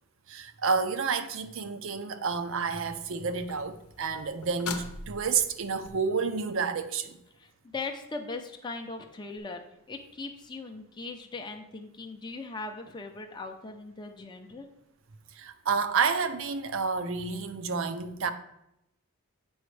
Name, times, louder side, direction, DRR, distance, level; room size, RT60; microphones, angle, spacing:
voice 1, 0.3-7.2 15.3-18.3, right 5 dB, 60° right, 0.5 m, -30 dB
sound 1, 2.8-5.9 9.4-9.5, left 4 dB, 80° left, 0.7 m, -42 dB
voice 2, 7.3-9.6 9.9-14.7, left 3 dB, 20° left, 0.5 m, -39 dB
7.9 x 5.1 x 3.2 m
head